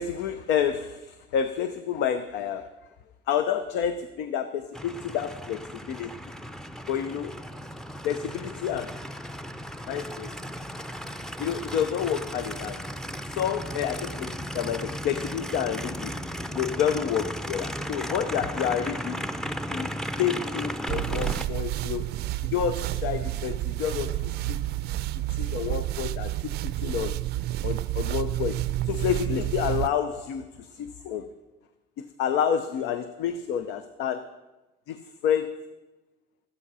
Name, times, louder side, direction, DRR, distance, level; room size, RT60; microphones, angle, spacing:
voice 1, 0.0-2.7 3.3-6.1 6.9-7.4 8.0-9.0 9.9-10.3 11.4-12.8 13.3-16.1 16.5-19.2 19.7-22.1 22.5-24.6 25.3-27.1 27.6-28.6 28.9-31.3 32.0-34.3 34.9-35.6, left 8 dB, 85° left, 11 dB, 0.6 m, -29 dB
Aircraft, 4.7-21.5, equal, 5° left, 0.5 m, -35 dB
sound 1, 20.9-29.9, right 15 dB, 75° right, 0.4 m, -30 dB
13.0 x 9.9 x 5.5 m, 1.1 s
cardioid pair, 110°, 17 cm